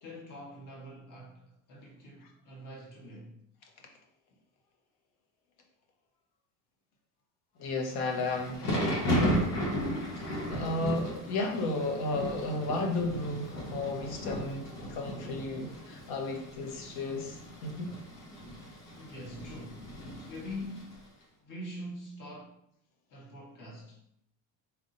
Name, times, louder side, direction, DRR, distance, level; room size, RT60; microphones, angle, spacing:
voice 1, 0.0-3.4 19.0-19.9 20.3-20.9 21.4-22.6 23.1-24.0, left 1 dB, 50° left, 1.7 m, -44 dB
voice 2, 7.6-8.7 10.1-18.0, left 2 dB, 70° left, 1.1 m, -33 dB
Thunder / Rain, 7.9-21.0, equal, 90° left, 1.4 m, -35 dB
4.4 x 3.4 x 2.6 m
supercardioid pair, 100°, 40 cm